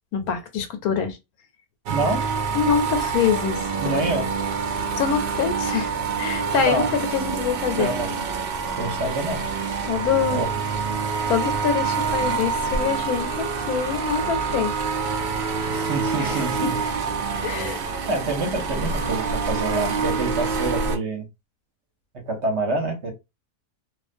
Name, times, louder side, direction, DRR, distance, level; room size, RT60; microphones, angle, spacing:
voice 1, 0.1-1.2 2.5-4.2 5.0-5.9 6.2-8.2 9.8-10.4 11.3-14.7 16.2-16.4 17.4-17.8, left 7 dB, 90° left, 1.1 m, -25 dB
voice 2, 1.9-2.3 3.8-4.3 6.5-6.9 7.8-8.1 8.8-9.5 10.3-10.5 15.7-16.8 18.1-21.3 22.3-23.1, right 2 dB, 55° right, 0.9 m, -26 dB
sound 1, 1.9-21.0, right 5 dB, 90° right, 0.5 m, -26 dB
2.4 x 2.1 x 2.5 m
omnidirectional pair, 1.5 m